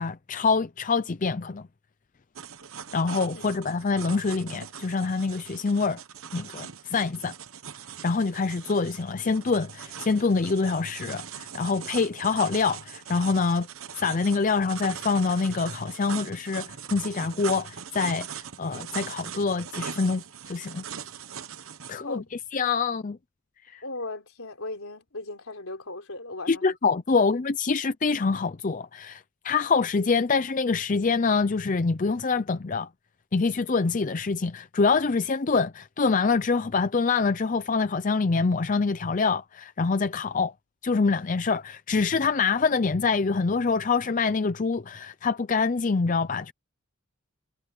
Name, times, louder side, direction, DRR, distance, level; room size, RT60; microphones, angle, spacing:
voice 1, 0.0-1.7 2.9-6.0 6.3-7.3 8.0-13.7 13.9-20.8 21.9-22.2 22.5-23.2 23.7-23.8 26.5-32.9 33.3-40.5 40.8-46.5, left 4 dB, 35° left, 0.5 m, -25 dB
sound 1, 2.4-21.9, right 8 dB, 65° right, 1.0 m, -41 dB
voice 2, 23.8-26.8, left 2 dB, 70° left, 4.0 m, -37 dB
head